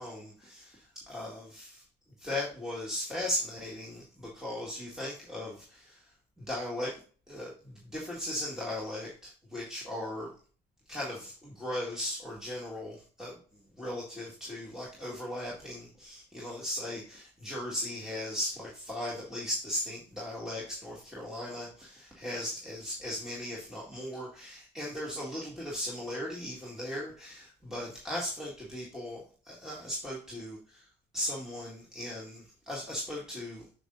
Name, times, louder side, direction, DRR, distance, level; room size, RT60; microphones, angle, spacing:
voice 1, 0.0-1.8 2.2-6.9 7.3-10.3 10.9-13.4 13.8-33.7, left 1 dB, 5° right, -5 dB, 1.8 m, -38 dB
6.6 x 6.4 x 2.6 m, 0.40 s
cardioid pair, 110°, 17 cm